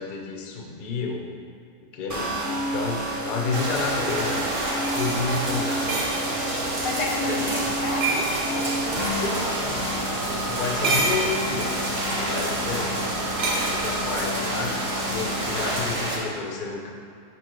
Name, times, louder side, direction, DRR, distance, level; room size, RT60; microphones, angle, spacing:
voice 1, 0.0-1.3 1.9-2.3 2.7-4.4 4.9-6.0 7.2-7.8 9.2-9.4 9.6-9.9 10.4-11.7 12.1-13.0 13.7-14.7 15.1-16.9, left 4 dB, 75° left, 0 dB, 0.4 m, -30 dB
sound 1, 2.1-15.8, right 1 dB, 25° right, 0.3 m, -31 dB
sound 2, 3.5-16.2, right 1 dB, 45° right, 0.8 m, -29 dB
voice 2, 4.8-5.9 6.8-9.6 10.0-10.4 12.3-12.7, left 2 dB, 90° left, 0 dB, 1.6 m, -34 dB
sound 3, 4.8-6.2 7.9-8.5 10.6-11.3 12.0-12.3 13.4-13.6, right 3 dB, 75° right, 0.5 m, -27 dB
5.2 x 4.5 x 4.5 m, 2.4 s
omnidirectional pair, 1.9 m